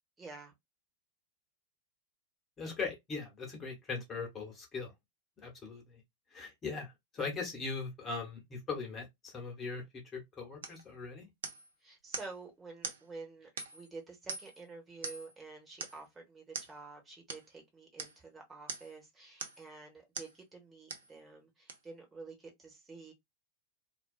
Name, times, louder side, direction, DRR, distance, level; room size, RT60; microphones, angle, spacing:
voice 1, 0.2-0.5 11.8-23.1, right 3 dB, 15° right, 1.0 m, -49 dB
voice 2, 2.6-4.9 5.4-6.0 6.3-11.3, left 4 dB, 20° left, 1.1 m, -40 dB
sound 1, 10.6-10.8 11.4-11.7 12.1-12.4 12.8-13.0 13.6-13.9 14.3-14.6 15.0-15.4 15.8-16.0 16.5-16.7 17.3-17.5 18.0-18.2 18.7-19.0 19.4-19.7 20.2-20.4 20.9-21.1 21.7-21.8, right 5 dB, 65° right, 0.5 m, -42 dB
2.4 x 2.2 x 2.3 m
figure-of-eight pair, 90°, 0 cm